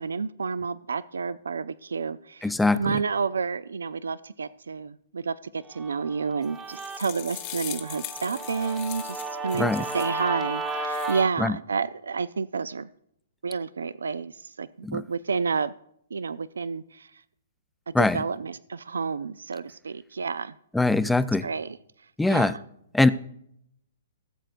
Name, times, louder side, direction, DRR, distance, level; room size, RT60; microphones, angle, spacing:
voice 1, 0.0-12.9 13.4-15.7 16.1-17.1 17.9-20.5 21.4-21.8 22.3-22.6, right 5 dB, 90° right, 17 dB, 0.3 m, -30 dB
voice 2, 2.4-2.8 9.6-9.9 11.4-11.5 14.8-15.0 17.9-18.2 20.7-21.5 22.2-22.5 22.9-23.1, left 2 dB, 5° left, 13 dB, 0.4 m, -22 dB
Guitar, 5.8-11.3, right 3 dB, 20° right, 1.0 m, -34 dB
sound 1, 6.4-10.2 10.7-11.2, left 14 dB, 40° left, 1.0 m, -40 dB
17.5 x 7.8 x 2.5 m, 0.72 s
hypercardioid pair, 135°, 0 cm